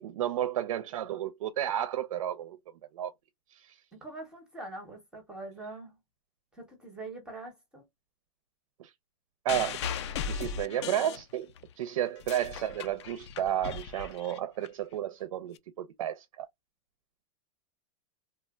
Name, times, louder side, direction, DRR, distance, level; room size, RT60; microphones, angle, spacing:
voice 1, 0.0-2.6 2.9-3.1 3.5-3.8 8.8-8.9 9.4-11.5 11.8-16.2, right 11 dB, 85° right, 0.5 m, -32 dB
voice 2, 3.9-5.9 6.5-7.8, right 2 dB, 5° right, 0.6 m, -43 dB
sound 1, 9.5-11.7 12.1-14.7 15.5-15.6, left 7 dB, 55° left, 0.4 m, -37 dB
3.1 x 2.1 x 2.2 m
supercardioid pair, 170°, 17 cm